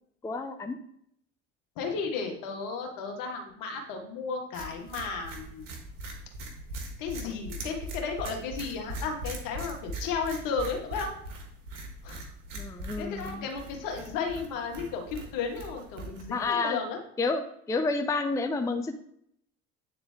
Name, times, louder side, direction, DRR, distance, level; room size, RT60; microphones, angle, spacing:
voice 1, 0.2-0.8 12.6-13.5 16.3-16.8 17.2-18.9, left 3 dB, 10° left, 8 dB, 0.5 m, -30 dB
voice 2, 1.7-5.7 7.0-11.1 12.0-12.2 13.0-17.0, left 5 dB, 60° left, 2 dB, 1.7 m, -34 dB
sound 1, 4.5-16.5, right 1 dB, 80° right, 1.3 m, -41 dB
8.8 x 3.8 x 3.6 m, 0.70 s
hypercardioid pair, 65°, 36 cm